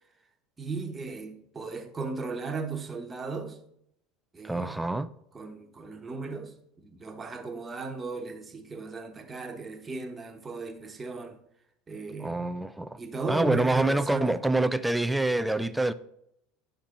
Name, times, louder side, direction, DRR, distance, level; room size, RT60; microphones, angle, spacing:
voice 1, 0.6-3.6 4.3-4.8 5.3-11.4 11.9-12.4 13.0-14.4, right 3 dB, 20° right, 1.4 m, -36 dB
voice 2, 4.4-5.1 12.2-13.0 13.3-15.9, right 2 dB, 5° right, 0.5 m, -26 dB
10.0 x 5.9 x 3.9 m
supercardioid pair, 105°, 0 cm